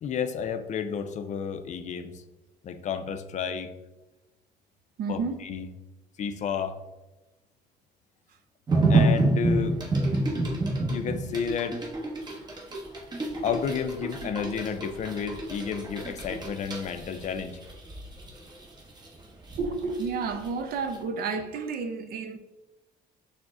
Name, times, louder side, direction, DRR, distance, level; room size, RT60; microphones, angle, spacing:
voice 1, 0.0-2.2 2.6-3.7 5.1-5.7 6.2-6.8 8.9-9.8 10.9-11.8 13.4-17.6, left 7 dB, 45° left, 0.4 m, -31 dB
voice 2, 5.0-5.4 19.6-22.4, right 4 dB, 65° right, 0.5 m, -31 dB
sound 1, 8.7-20.5 20.9-21.0, right 2 dB, 25° right, 0.9 m, -28 dB
6.1 x 2.1 x 3.6 m
cardioid pair, 110°, 17 cm